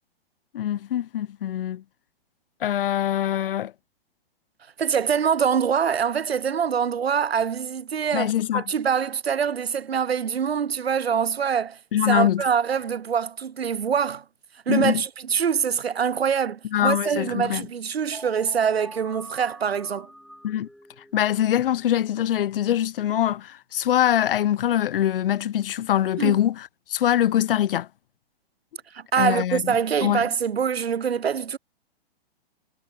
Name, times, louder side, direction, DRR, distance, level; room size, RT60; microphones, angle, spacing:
voice 1, 0.5-1.8 2.6-3.7 8.1-8.6 11.9-12.4 14.7-15.0 16.7-17.7 20.4-20.7 21.1-27.9 29.2-29.8 30.0-30.2, left 11 dB, 65° left, 0.9 m, -23 dB
voice 2, 4.8-11.8 12.1-14.2 14.7-20.1 26.2-26.4 28.9-31.6, right 7 dB, 85° right, 1.1 m, -24 dB
sound 1, 18.1-21.9, equal, ahead, 2.8 m, -46 dB
hypercardioid pair, 120°, 30 cm